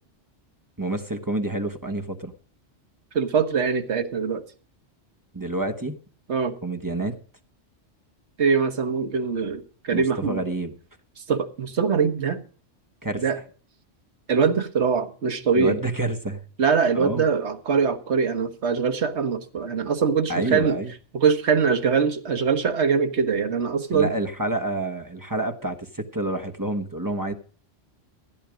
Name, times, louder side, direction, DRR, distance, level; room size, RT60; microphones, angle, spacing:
voice 1, 0.8-2.3 5.3-6.0 6.6-7.2 9.9-10.7 13.0-13.2 15.6-16.4 16.9-17.3 20.3-20.9 23.9-27.3, right 2 dB, 15° right, 7 dB, 1.1 m, -28 dB
voice 2, 3.1-4.4 6.3-6.5 8.4-10.4 11.3-12.4 13.2-13.4 14.3-15.8 16.6-20.8 21.1-24.1, right 6 dB, 65° right, 7 dB, 1.7 m, -23 dB
15.0 x 10.0 x 5.1 m, 0.42 s
omnidirectional pair, 1.2 m